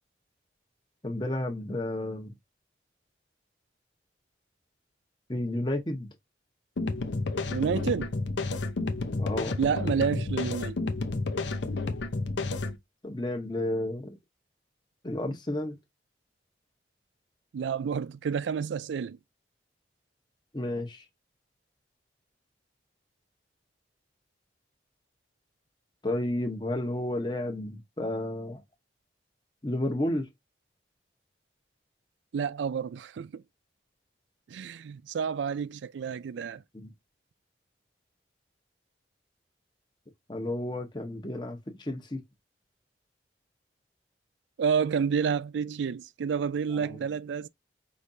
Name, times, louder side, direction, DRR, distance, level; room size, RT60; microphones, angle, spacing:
voice 1, 1.0-2.3 5.3-6.1 9.2-9.6 13.0-14.2 15.0-15.8 20.5-21.0 26.0-28.6 29.6-30.3 36.7-36.9 40.3-42.2 46.7-47.0, left 1 dB, 25° left, 1.0 m, -32 dB
sound 1, 6.8-12.8, left 3 dB, 85° left, 0.7 m, -31 dB
voice 2, 7.5-8.1 9.6-10.8 17.5-19.2 32.3-33.4 34.5-36.6 44.6-47.5, right 6 dB, 85° right, 0.3 m, -29 dB
5.2 x 3.2 x 2.7 m
head